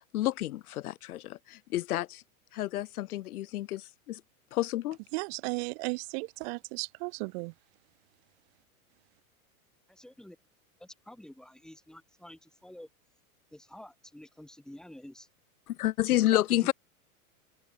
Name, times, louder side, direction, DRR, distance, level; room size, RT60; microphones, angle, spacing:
voice 1, 0.1-2.2 2.5-4.2 4.5-5.0 15.7-16.7, left 15 dB, 80° left, 1.0 m, -30 dB
voice 2, 5.1-7.5, right 32 dB, 45° right, 1.1 m, -35 dB
voice 3, 9.9-10.4 10.8-12.9 13.5-15.3 16.3-16.7, left 1 dB, ahead, 1.8 m, -49 dB
supercardioid pair, 140°, 44 cm